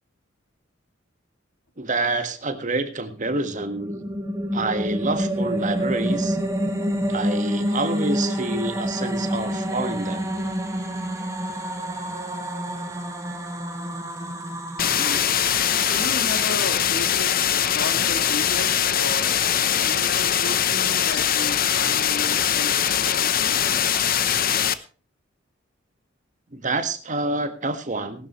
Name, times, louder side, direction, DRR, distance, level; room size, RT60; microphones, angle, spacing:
voice 1, 1.8-4.0 4.5-6.4 7.1-10.3 14.8-15.3 26.5-28.3, right 3 dB, 40° right, 8 dB, 1.6 m, -28 dB
sound 1, 3.3-16.6, equal, 15° right, 2.3 m, -28 dB
sound 2, 14.8-24.7, left 9 dB, 50° left, 0.9 m, -22 dB
voice 2, 15.8-19.4 19.7-23.6, left 2 dB, 70° left, 6 dB, 2.4 m, -34 dB
18.5 x 12.0 x 3.2 m, 0.37 s
head